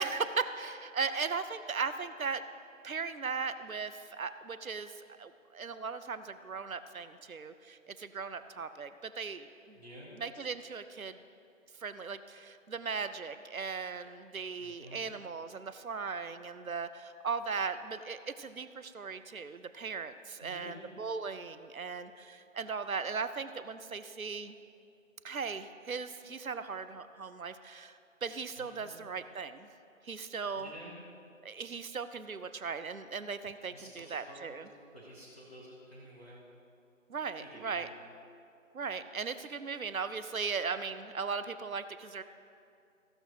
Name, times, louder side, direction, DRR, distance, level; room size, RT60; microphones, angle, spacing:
voice 1, 0.0-2.4 2.8-9.8 10.2-11.2 11.8-24.6 25.2-29.7 30.0-30.7 31.4-34.7 37.1-37.9 38.7-42.2, right 5 dB, 80° right, 11 dB, 0.7 m, -38 dB
voice 2, 9.7-10.1 14.6-15.0 20.4-20.8 28.6-28.9 30.5-30.9 33.7-36.4 37.4-37.9, right 1 dB, 10° right, -12 dB, 1.2 m, -51 dB
15.5 x 6.3 x 4.9 m, 2.5 s
figure-of-eight pair, 165°, 41 cm